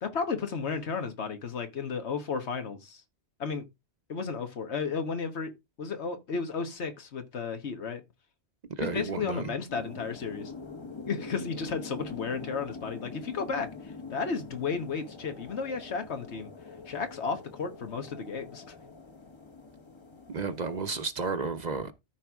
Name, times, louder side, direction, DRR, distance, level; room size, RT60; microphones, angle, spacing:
voice 1, 0.0-3.0 3.4-3.6 4.1-5.5 5.8-8.0 8.8-10.5 11.1-16.5 16.9-18.6, left 5 dB, 80° left, 1.5 m, -33 dB
voice 2, 8.8-9.5 20.3-21.9, right 4 dB, 45° right, 0.8 m, -32 dB
sound 1, 9.7-21.1, left 4 dB, 25° left, 0.9 m, -44 dB
13.5 x 4.6 x 3.5 m
omnidirectional pair, 1.1 m